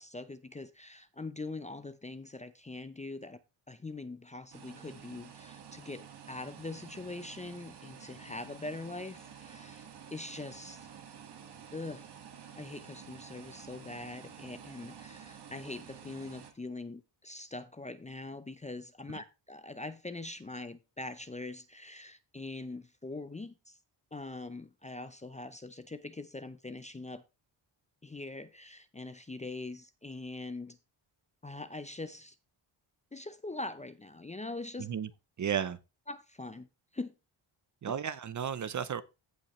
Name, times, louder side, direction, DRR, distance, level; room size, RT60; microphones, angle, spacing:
voice 1, 0.0-3.4 3.7-9.9 10.1-10.9 11.7-12.1 12.6-23.8 24.1-27.2 28.0-30.8 31.4-32.4 33.1-34.9 36.1-36.7 36.9-37.1, left 2 dB, 15° left, 0.5 m, -42 dB
sound 1, 4.5-16.5, right 8 dB, 60° right, 1.9 m, -50 dB
voice 2, 34.8-35.1 35.4-35.8 37.8-39.0, right 8 dB, 40° right, 0.6 m, -33 dB
15.5 x 5.4 x 3.1 m
wide cardioid pair, 170°, 46 cm